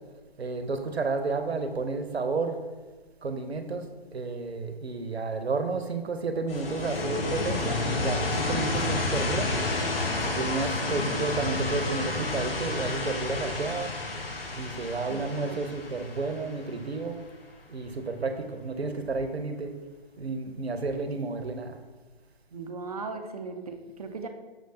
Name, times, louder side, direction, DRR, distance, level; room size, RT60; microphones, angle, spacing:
voice 1, 0.4-2.6 3.2-3.8 4.1-9.5 10.2-13.9 14.5-17.2 17.7-19.7 20.2-21.8, right 3 dB, 90° right, 7 dB, 0.6 m, -31 dB
sound 1, 6.5-17.2, left 2 dB, 65° left, 0.9 m, -30 dB
voice 2, 15.1-15.6 22.5-24.3, right 4 dB, 40° right, 6 dB, 0.4 m, -38 dB
6.2 x 3.2 x 2.6 m, 1.3 s
figure-of-eight pair, 140°, 31 cm